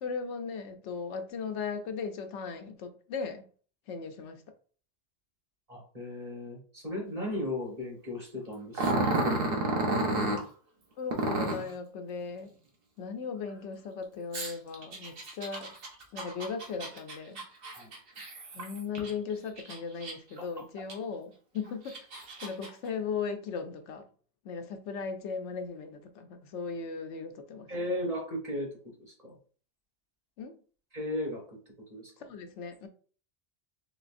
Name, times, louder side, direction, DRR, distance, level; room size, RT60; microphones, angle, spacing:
voice 1, 0.0-3.4 3.9-4.4 11.0-12.5 13.0-15.7 16.1-17.4 18.5-22.0 22.4-24.0 24.4-27.7 30.4-30.6 32.2-32.9, left 5 dB, 90° left, 0.9 m, -37 dB
voice 2, 5.7-10.4 17.7-17.9 27.7-28.7 29.0-29.4 30.9-31.6 31.9-32.1, left 1 dB, 35° right, 1.4 m, -36 dB
Growling, 8.7-10.4 11.1-11.7 14.3-19.1 19.6-20.4 20.9-21.0 21.7-22.7, right 2 dB, 60° right, 1.0 m, -31 dB
4.0 x 3.1 x 2.5 m
omnidirectional pair, 1.2 m